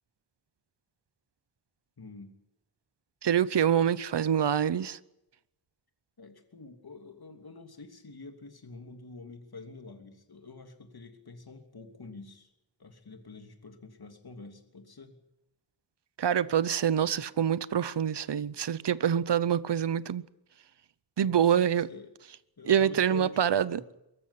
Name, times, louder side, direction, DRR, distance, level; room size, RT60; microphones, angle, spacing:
voice 1, 2.0-2.3 6.2-12.5 12.8-15.2 21.2-22.1 22.6-23.8, left 3 dB, 60° left, 3.0 m, -47 dB
voice 2, 3.2-5.0 16.2-20.2 21.2-21.9 22.7-23.8, right 9 dB, 80° right, 0.8 m, -26 dB
23.5 x 14.5 x 9.9 m
wide cardioid pair, 75°, 41 cm